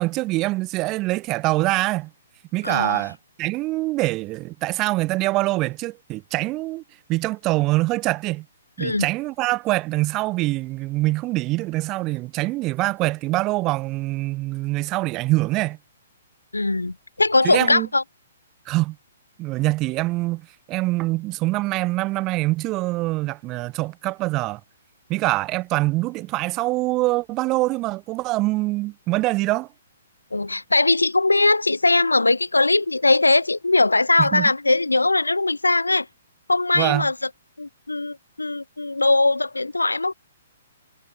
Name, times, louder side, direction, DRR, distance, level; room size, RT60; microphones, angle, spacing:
voice 1, 0.0-2.1 2.5-6.8 7.1-8.5 8.8-15.8 17.4-17.9 18.7-19.0 19.4-20.4 20.7-24.6 25.1-29.7 34.2-34.5 36.7-37.1, right 20 dB, 30° right, 0.4 m, -24 dB
voice 2, 2.6-3.0 8.8-9.1 16.5-18.0 30.3-36.1 36.5-37.1 37.6-40.1, left 2 dB, 90° left, 0.6 m, -20 dB
figure-of-eight pair, 125°, 0 cm